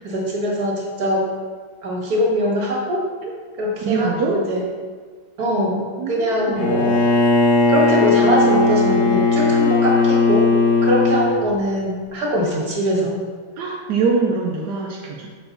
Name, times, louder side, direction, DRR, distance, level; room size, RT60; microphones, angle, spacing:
voice 1, 0.0-1.3 1.8-3.1 3.6-4.6 5.4-7.0 7.7-10.5 10.8-13.2, equal, 65° right, -2 dB, 2.0 m, -22 dB
voice 2, 3.9-4.4 6.0-6.7 13.6-15.3, right 4 dB, 90° right, -2 dB, 1.4 m, -23 dB
Bowed string instrument, 6.6-11.4, left 3 dB, 75° left, 1.5 m, -17 dB
6.9 x 5.7 x 4.0 m, 1.5 s
omnidirectional pair, 1.7 m